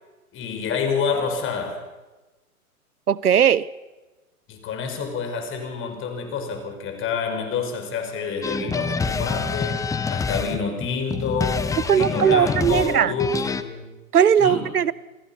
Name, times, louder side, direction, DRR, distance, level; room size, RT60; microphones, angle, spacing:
voice 1, 0.3-1.8 4.5-13.9 14.4-14.7, left 5 dB, 25° left, 6 dB, 5.5 m, -28 dB
voice 2, 3.1-3.7 11.9-13.1 14.1-14.9, right 8 dB, 90° right, 21 dB, 0.9 m, -18 dB
sound 1, 8.4-13.6, left 4 dB, 5° left, 0.9 m, -27 dB
28.5 x 19.5 x 5.8 m, 1.2 s
hypercardioid pair, 115°, 44 cm